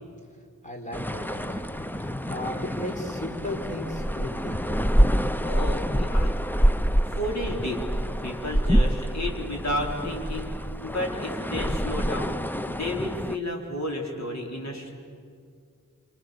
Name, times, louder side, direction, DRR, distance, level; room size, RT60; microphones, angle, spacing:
voice 1, 0.6-4.8, left 1 dB, 20° left, 1 dB, 4.5 m, -36 dB
sound 1, 0.9-13.4, equal, 5° left, 0.7 m, -26 dB
voice 2, 5.4-6.3 6.7-6.8 7.1-7.8 8.2-10.5 10.8-14.9, left 1 dB, 55° left, -1 dB, 4.9 m, -32 dB
28.5 x 26.5 x 7.0 m, 2.2 s
wide cardioid pair, 65°, 33 cm